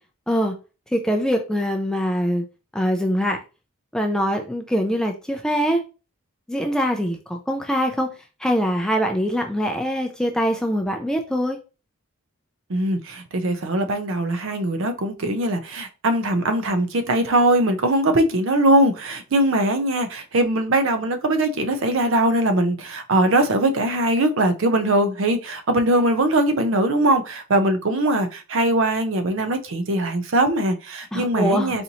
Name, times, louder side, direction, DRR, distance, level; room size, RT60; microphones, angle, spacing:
voice 1, 0.3-0.6 0.9-2.4 2.7-3.4 3.9-5.8 6.5-8.1 8.4-11.6 31.1-31.8, equal, 5° left, 0.3 m, -23 dB
voice 2, 12.7-31.8, right 1 dB, 65° right, 0.5 m, -21 dB
4.2 x 2.6 x 2.7 m
head